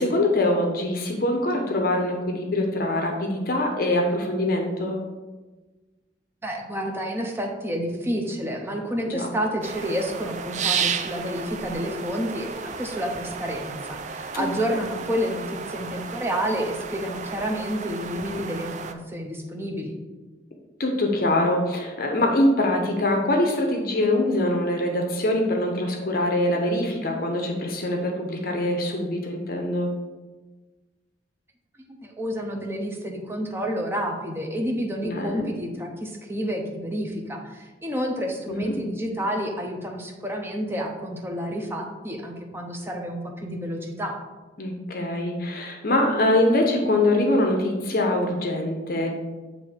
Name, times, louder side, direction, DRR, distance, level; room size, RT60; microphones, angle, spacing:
voice 1, 0.0-5.0 9.1-9.3 14.3-14.4 20.8-29.9 35.0-35.5 38.5-38.7 44.6-49.1, left 1 dB, 55° left, 2 dB, 0.7 m, -23 dB
voice 2, 6.4-19.9 31.9-44.2, equal, 15° right, 1 dB, 0.7 m, -29 dB
sound 1, 9.6-18.9, right 6 dB, 40° right, 0.3 m, -33 dB
7.5 x 2.9 x 4.3 m, 1.2 s
head